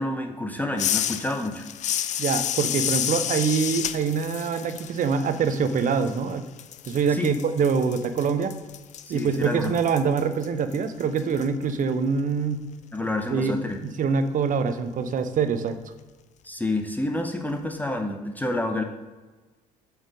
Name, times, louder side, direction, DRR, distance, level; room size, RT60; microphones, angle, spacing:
voice 1, 0.0-1.6 7.1-7.3 9.0-9.7 12.9-13.8 16.4-18.8, left 2 dB, 10° left, 4 dB, 0.7 m, -28 dB
sound 1, 0.8-6.3 6.6-11.4, left 10 dB, 35° left, 0.4 m, -30 dB
voice 2, 2.2-6.5 6.9-8.5 9.1-12.6 13.3-13.6 13.8-15.8, right 5 dB, 40° right, 10 dB, 0.7 m, -24 dB
7.2 x 3.4 x 5.1 m, 1.2 s
figure-of-eight pair, 55°, 21 cm